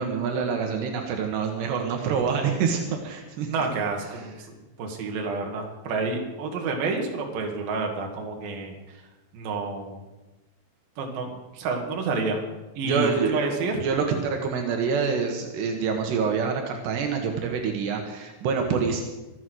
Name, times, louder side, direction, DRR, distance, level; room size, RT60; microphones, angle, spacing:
voice 1, 0.0-3.5 4.1-4.3 12.8-13.4 13.8-19.0, right 6 dB, 80° right, 3 dB, 3.5 m, -26 dB
voice 2, 3.5-4.4 4.8-8.8 9.3-10.0 11.0-12.4 12.8-13.8, right 3 dB, 65° right, 2 dB, 3.7 m, -29 dB
24.5 x 8.3 x 6.3 m, 1.1 s
omnidirectional pair, 4.8 m